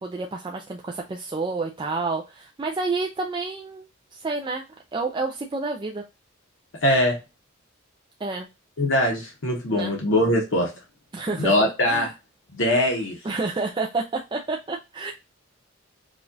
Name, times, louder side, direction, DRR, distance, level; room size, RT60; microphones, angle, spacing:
voice 1, 0.0-3.9 4.1-4.6 4.9-6.0 8.2-8.5 9.7-9.9 11.1-11.5 11.8-12.1 13.2-15.1, right 3 dB, 25° right, 2 dB, 0.3 m, -29 dB
voice 2, 6.8-7.2 8.8-10.7 11.4-12.1 12.5-13.2, left 1 dB, 70° left, -1 dB, 0.9 m, -22 dB
4.9 x 2.4 x 2.6 m, 0.26 s
head